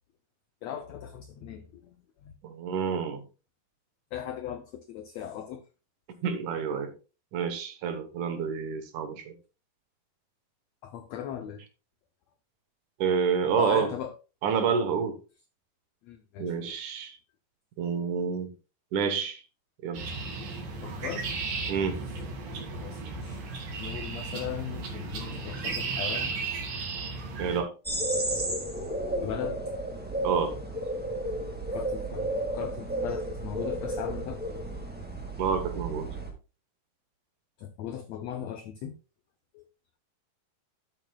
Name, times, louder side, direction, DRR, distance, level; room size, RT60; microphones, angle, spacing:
voice 1, 0.6-1.6 2.2-2.3 4.1-5.6 10.8-11.6 13.6-14.1 16.1-16.8 20.8-21.4 22.7-23.5 23.8-26.3 29.2-29.6 31.7-34.4 37.6-38.9 39.5-39.6, left 9 dB, 85° left, 1.5 m, -38 dB
voice 2, 2.4-3.2 6.2-6.9 7.3-9.3 13.0-13.9 14.4-15.2 16.4-17.2 17.8-18.5 18.9-19.4 19.8-20.0 21.7-22.0 27.4-27.7 30.2-30.6 35.4-36.1, right 6 dB, 65° right, 2.4 m, -28 dB
Bird Calls on Old Sib, 19.9-27.6, right 4 dB, 90° right, 4.1 m, -35 dB
sound 1, 27.8-36.3, right 1 dB, 10° right, 0.5 m, -32 dB
12.0 x 8.9 x 2.3 m
omnidirectional pair, 4.0 m